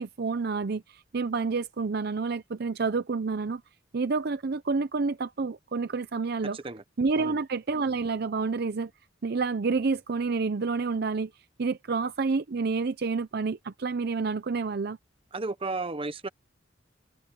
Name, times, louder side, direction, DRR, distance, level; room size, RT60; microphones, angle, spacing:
voice 1, 0.0-3.6 3.9-6.6 7.0-8.9 9.2-11.3 11.6-15.0, right 4 dB, 55° right, 0.6 m, -29 dB
voice 2, 15.3-16.3, right 3 dB, 30° right, 0.8 m, -33 dB
head